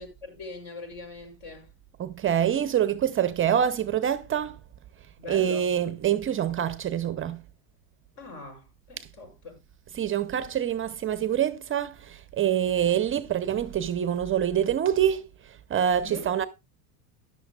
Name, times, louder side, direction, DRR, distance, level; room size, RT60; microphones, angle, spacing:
voice 1, 0.0-1.7 5.2-5.7 8.2-9.6 16.0-16.3, left 3 dB, 55° left, 7.3 m, -42 dB
voice 2, 2.0-4.6 5.3-7.4 9.0-9.1 9.9-15.2 15.7-16.5, right 9 dB, 25° right, 0.6 m, -25 dB
13.5 x 11.0 x 2.4 m
hypercardioid pair, 95°, 48 cm